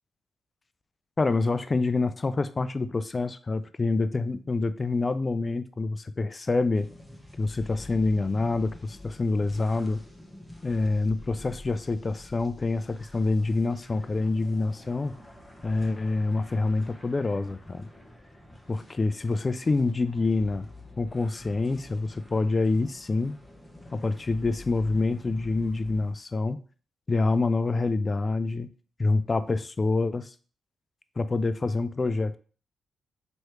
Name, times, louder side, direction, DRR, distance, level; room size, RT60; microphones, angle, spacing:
voice 1, 1.2-6.9 7.4-10.0 10.6-15.2 15.6-17.9 18.7-20.7 21.0-23.4 23.9-26.6 27.1-28.7 29.0-30.3 31.2-32.4, left 3 dB, 35° left, 13 dB, 0.4 m, -26 dB
sound 1, 6.7-26.1, left 1 dB, 10° left, 1.0 m, -48 dB
3.1 x 3.1 x 4.5 m, 0.40 s
hypercardioid pair, 45°, 0 cm